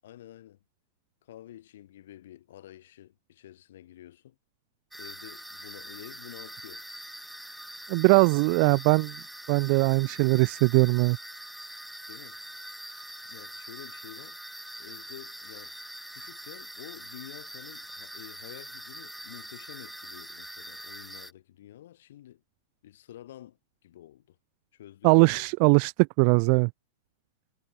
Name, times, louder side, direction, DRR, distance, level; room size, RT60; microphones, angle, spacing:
voice 1, 0.0-0.6 1.2-4.4 4.9-6.8 8.5-8.8 12.1-12.4 13.3-14.4 14.8-15.8 16.1-22.4 22.8-24.4 24.7-25.7, left 12 dB, 70° left, 2.0 m, -49 dB
sound 1, 4.9-21.3, equal, ahead, 0.6 m, -43 dB
voice 2, 7.9-9.1 9.5-11.2 25.0-25.9 26.2-26.7, right 40 dB or more, 50° right, 0.3 m, -21 dB
hypercardioid pair, 105°, 0 cm